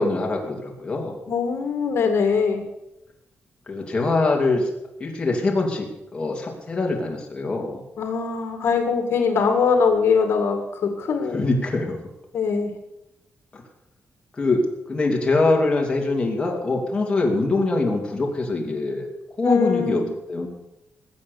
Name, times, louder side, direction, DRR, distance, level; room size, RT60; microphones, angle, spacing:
voice 1, 0.0-1.2 3.7-4.7 5.0-5.9 6.1-7.8 11.3-12.0 13.5-13.6 14.3-19.1 19.4-20.0 20.3-20.5, left 2 dB, 20° left, -1 dB, 2.9 m, -23 dB
voice 2, 1.3-2.6 8.0-11.5 12.3-12.7 19.4-20.1, left 5 dB, 65° left, 5 dB, 1.9 m, -22 dB
20.5 x 7.7 x 6.9 m, 0.89 s
wide cardioid pair, 165°, 4 cm